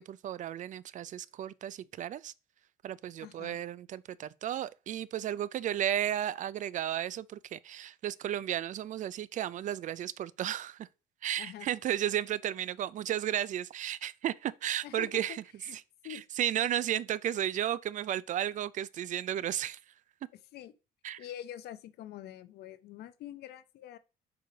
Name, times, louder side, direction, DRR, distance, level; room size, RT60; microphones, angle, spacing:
voice 1, 0.0-2.3 2.8-10.9 11.2-15.4 15.7-15.8 16.1-19.8 21.0-21.2, right 11 dB, 50° right, 0.4 m, -34 dB
voice 2, 3.2-3.6 11.4-11.7 14.8-15.2 15.6-15.8 16.0-16.2 20.5-20.7 21.2-24.0, left 12 dB, 70° left, 0.7 m, -45 dB
6.8 x 3.2 x 5.1 m
cardioid pair, 110°, 17 cm